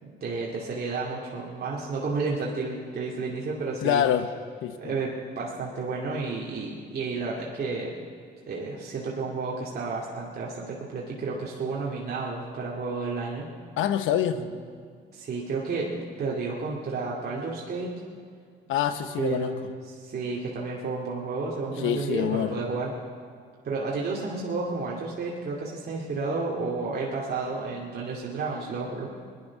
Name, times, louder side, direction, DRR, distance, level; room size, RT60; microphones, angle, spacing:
voice 1, 0.0-4.0 4.8-7.9 8.5-13.5 14.3-14.5 15.1-17.9 19.2-19.6 19.9-22.9 23.6-29.1, right 4 dB, 55° right, -5 dB, 2.5 m, -31 dB
voice 2, 3.8-4.3 4.6-4.9 13.8-14.4 18.7-19.5 21.8-22.6, left 10 dB, 85° left, 10 dB, 1.0 m, -26 dB
20.5 x 11.0 x 6.0 m, 2.1 s
cardioid pair, 90°, 20 cm